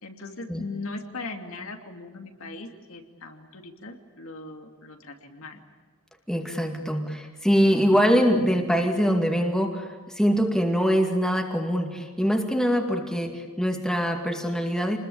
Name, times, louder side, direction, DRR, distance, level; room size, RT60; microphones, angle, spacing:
voice 1, 0.0-5.6, left 3 dB, 70° left, 4 dB, 2.8 m, -39 dB
voice 2, 6.3-15.0, equal, ahead, 2 dB, 2.3 m, -23 dB
28.5 x 21.0 x 8.7 m, 1.4 s
head